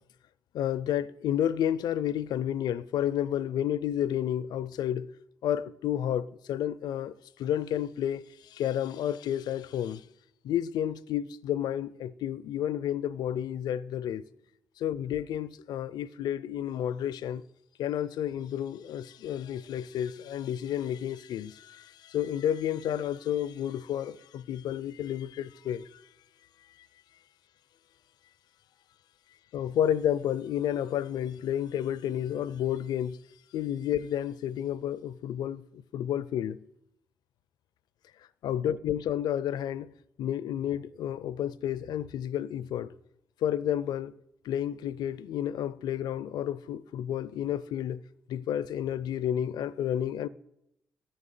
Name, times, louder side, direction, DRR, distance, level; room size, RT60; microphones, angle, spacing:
voice 1, 0.5-5.1 5.4-10.0 10.4-14.2 14.8-17.4 17.8-26.0 29.5-33.2 33.5-36.6 38.4-39.9 40.2-42.9 43.4-44.1 44.4-48.0 48.3-50.3, left 10 dB, 75° left, 0.5 m, -31 dB
9.9 x 9.6 x 9.3 m
supercardioid pair, 50°, 7 cm